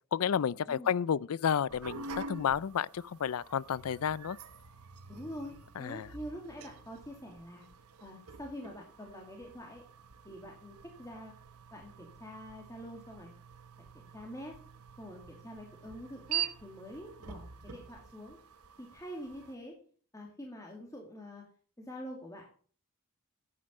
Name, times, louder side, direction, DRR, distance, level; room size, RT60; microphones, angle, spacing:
voice 1, 0.1-4.4 5.8-6.1, left 8 dB, 75° left, 0.4 m, -31 dB
sound 1, 1.7-19.5, right 7 dB, 85° right, 1.2 m, -46 dB
voice 2, 5.1-7.7 8.0-9.8 10.2-11.3 11.7-13.3 14.1-14.5 15.0-18.4 18.8-19.7 20.1-21.4 21.8-22.5, equal, 15° left, 2.2 m, -45 dB
10.0 x 8.9 x 5.4 m
head